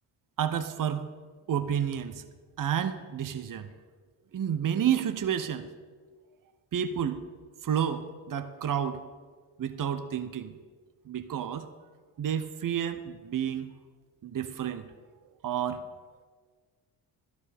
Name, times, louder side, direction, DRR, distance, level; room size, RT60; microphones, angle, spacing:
voice 1, 0.4-1.1 1.5-2.2 2.6-3.7 4.3-5.7 6.7-7.2 7.6-9.0 9.6-10.5 11.1-11.7 12.2-13.7 14.2-14.8 15.4-15.8, right 9 dB, 45° right, 11 dB, 0.9 m, -30 dB
12.0 x 4.8 x 8.4 m, 1.5 s
hypercardioid pair, 45°, 47 cm